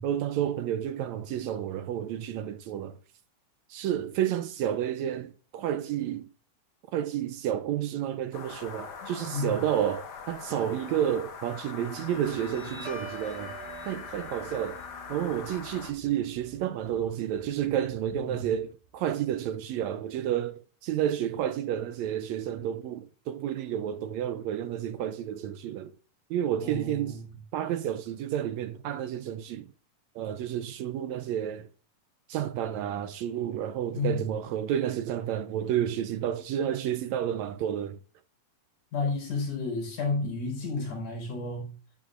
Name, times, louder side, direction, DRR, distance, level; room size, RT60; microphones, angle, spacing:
voice 1, 0.0-3.0 3.7-6.3 6.9-13.6 13.9-14.8 15.1-25.9 26.3-27.2 27.5-29.7 30.1-31.7 32.3-38.0, right 10 dB, 80° right, 1.6 m, -30 dB
sound 1, 8.3-15.9, left 6 dB, 50° left, 1.2 m, -42 dB
Guitar, 12.1-19.1, right 2 dB, 55° right, 5.1 m, -46 dB
voice 2, 18.1-18.4 26.6-27.2 33.9-34.2 38.9-41.7, left 3 dB, 80° left, 5.5 m, -31 dB
11.0 x 9.1 x 2.5 m
omnidirectional pair, 3.7 m